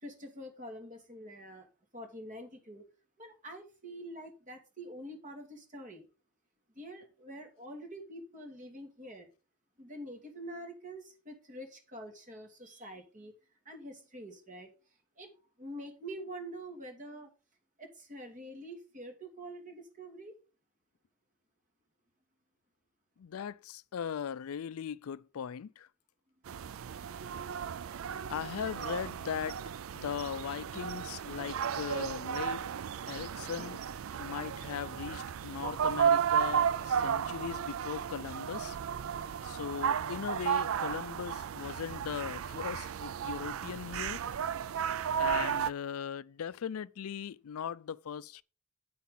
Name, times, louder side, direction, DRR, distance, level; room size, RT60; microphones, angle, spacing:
voice 1, 0.0-2.8 3.2-6.1 6.7-9.3 9.8-13.3 13.7-14.7 15.2-15.3 15.6-17.3 17.8-20.4 33.6-33.8, right 1 dB, 35° right, 2.3 m, -46 dB
voice 2, 23.2-25.9 28.3-29.6 29.9-32.6 33.1-33.8 34.2-38.8 39.4-44.2 45.2-48.4, left 7 dB, 80° left, 0.4 m, -39 dB
sound 1, 26.5-45.7, right 8 dB, 70° right, 0.4 m, -34 dB
9.4 x 8.4 x 3.9 m
head